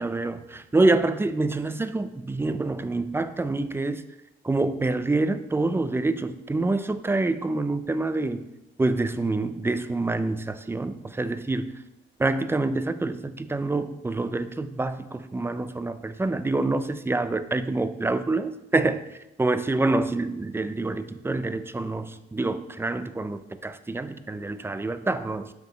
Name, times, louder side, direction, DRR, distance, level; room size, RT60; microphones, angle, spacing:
voice 1, 0.0-4.0 4.4-8.4 8.8-11.7 12.2-19.0 19.4-25.5, right 2 dB, 10° right, 12 dB, 0.5 m, -26 dB
7.4 x 6.0 x 4.1 m, 0.91 s
cardioid pair, 90°, 20 cm